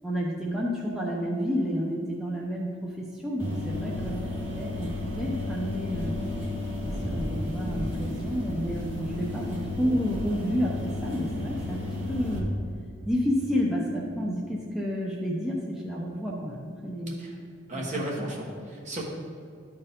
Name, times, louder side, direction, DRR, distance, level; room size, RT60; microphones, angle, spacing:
voice 1, 0.0-4.2 4.5-6.2 6.8-12.5 13.1-17.2 17.7-18.0, equal, 5° right, -4 dB, 0.7 m, -30 dB
sound 1, 3.4-12.4, left 2 dB, 65° right, 2.1 m, -33 dB
voice 2, 17.7-19.0, right 1 dB, 40° right, -3 dB, 1.3 m, -34 dB
12.5 x 4.5 x 3.7 m, 2.4 s
head